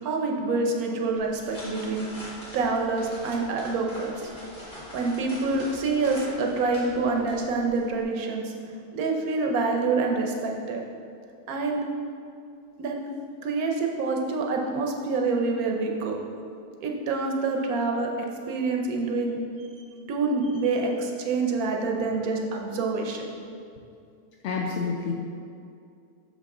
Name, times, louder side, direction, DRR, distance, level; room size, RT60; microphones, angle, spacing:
voice 1, 0.0-2.1 2.5-4.3 4.7-8.5 8.9-10.8 11.5-11.8 12.8-13.0 13.4-16.2 16.8-19.7 20.1-23.3, right 3 dB, 70° right, 1 dB, 1.1 m, -27 dB
sound 1, 1.2-8.0, left 1 dB, 30° left, 1.5 m, -43 dB
voice 2, 24.4-25.1, left 5 dB, 70° left, -1 dB, 0.7 m, -28 dB
6.1 x 5.3 x 3.7 m, 2.4 s
omnidirectional pair, 1.7 m